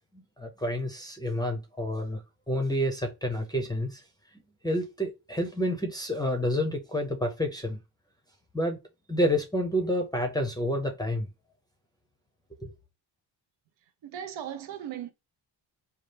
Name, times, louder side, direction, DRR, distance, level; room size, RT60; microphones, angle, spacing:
voice 1, 0.1-4.0 4.6-7.8 8.5-8.8 9.1-11.3 12.6-12.7, equal, 10° left, 0.5 m, -29 dB
voice 2, 14.0-15.1, right 10 dB, 85° right, 0.7 m, -37 dB
5.3 x 2.3 x 3.2 m
cardioid pair, 135°, 45 cm